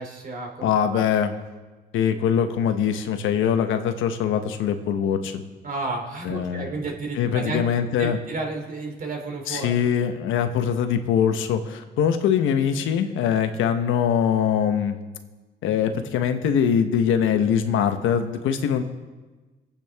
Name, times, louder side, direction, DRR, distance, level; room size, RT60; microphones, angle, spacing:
voice 1, 0.0-1.0 5.6-7.6 8.0-9.7, right 3 dB, 45° right, 1 dB, 2.9 m, -32 dB
voice 2, 0.6-1.3 1.9-5.4 6.2-6.7 7.1-8.2 9.5-15.0 15.6-18.8, left 8 dB, 90° left, 7 dB, 1.1 m, -22 dB
23.0 x 8.6 x 3.5 m, 1.3 s
cardioid pair, 90°, 20 cm